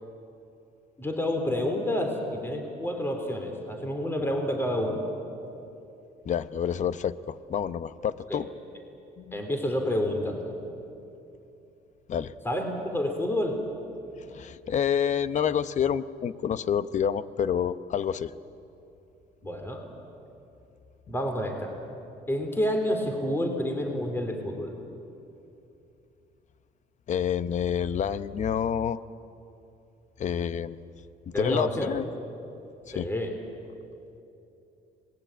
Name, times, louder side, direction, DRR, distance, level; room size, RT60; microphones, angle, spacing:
voice 1, 1.0-5.0 8.3-8.4 9.3-10.5 12.4-13.6 19.4-19.9 21.1-21.7 22.3-24.7 31.3-31.9 32.9-33.3, left 1 dB, 15° left, 4 dB, 3.6 m, -29 dB
voice 2, 6.2-8.5 9.2-9.4 12.1-12.3 14.3-18.3 27.1-29.0 30.2-30.8 31.4-32.1 32.9-33.1, left 8 dB, 45° left, 14 dB, 0.9 m, -28 dB
26.5 x 20.0 x 9.1 m, 2.8 s
cardioid pair, 110°, 17 cm